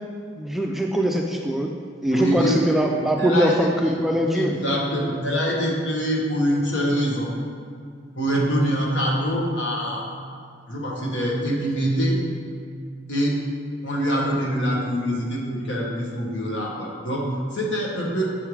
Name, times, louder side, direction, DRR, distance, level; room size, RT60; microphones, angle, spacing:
voice 1, 0.4-1.7 2.0-4.5, equal, ahead, 0 dB, 0.3 m, -22 dB
voice 2, 2.1-2.9 3.2-4.0 4.3-7.3 8.2-10.1 10.7-12.2 13.1-13.4 13.8-18.3, equal, 65° left, -2 dB, 1.3 m, -24 dB
7.4 x 3.3 x 4.8 m, 2.3 s
head